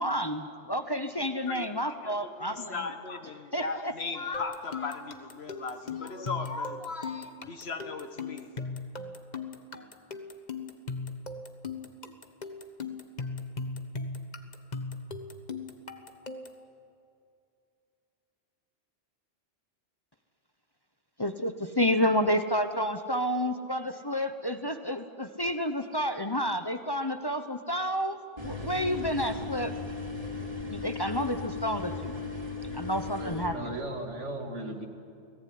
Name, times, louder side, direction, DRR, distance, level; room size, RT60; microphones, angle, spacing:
voice 1, 0.0-2.9 3.5-3.9 21.2-29.7 30.7-32.1 32.7-33.8, equal, 20° left, 8 dB, 0.9 m, -30 dB
voice 2, 1.3-8.5, left 4 dB, 60° left, 8 dB, 1.6 m, -37 dB
sound 1, 4.3-16.6, left 4 dB, 40° left, 1.4 m, -38 dB
sound 2, 28.4-33.5, left 4 dB, 30° right, 3.8 m, -37 dB
voice 3, 33.2-34.9, right 2 dB, 80° right, 4 dB, 2.8 m, -37 dB
30.0 x 19.0 x 9.5 m, 2.6 s
omnidirectional pair, 1.2 m